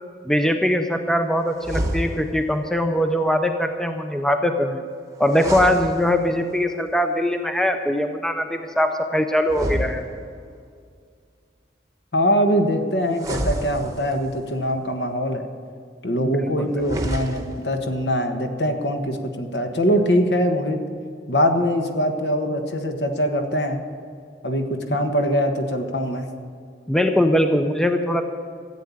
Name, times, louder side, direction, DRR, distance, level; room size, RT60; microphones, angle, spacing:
voice 1, 0.3-4.8 5.2-10.0 16.2-16.8 26.9-28.2, equal, 5° left, 6 dB, 0.6 m, -21 dB
sound 1, 1.6-2.5 5.2-6.6 9.4-10.6 13.1-14.4 16.7-17.7, right 1 dB, 20° right, 1.0 m, -29 dB
voice 2, 12.1-15.4 16.0-20.8 21.3-23.8 24.4-24.6 24.9-26.3, equal, 65° left, 5 dB, 1.4 m, -22 dB
14.0 x 8.7 x 8.4 m, 2.2 s
head